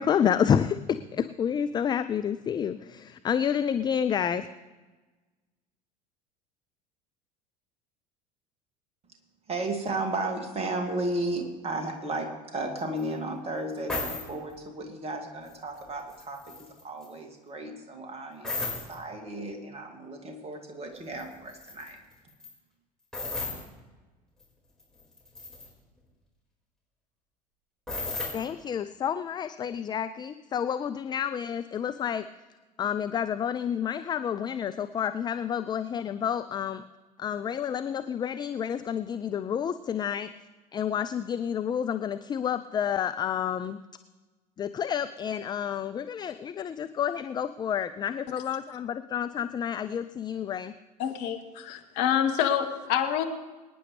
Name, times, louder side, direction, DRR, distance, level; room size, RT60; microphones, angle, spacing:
voice 1, 0.0-4.5 28.3-32.3 32.8-36.8 37.2-40.3 40.7-43.8 44.6-50.7, left 8 dB, 20° left, 11 dB, 0.4 m, -29 dB
voice 2, 9.5-16.6 16.8-22.0, right 2 dB, 30° right, 4 dB, 2.3 m, -34 dB
sound 1, 13.0-13.1 13.9-14.3 15.5-15.8 16.1-17.1 18.4-18.9 21.2-21.3 21.5-21.9 22.3-22.5 23.1-23.6 24.4-24.5 24.8-25.7 27.9-28.4, left 3 dB, 5° left, 4.6 m, -34 dB
voice 3, 51.0-53.2, left 9 dB, 50° left, 5 dB, 1.4 m, -27 dB
24.5 x 9.9 x 3.3 m, 1.2 s
figure-of-eight pair, 70°, 21 cm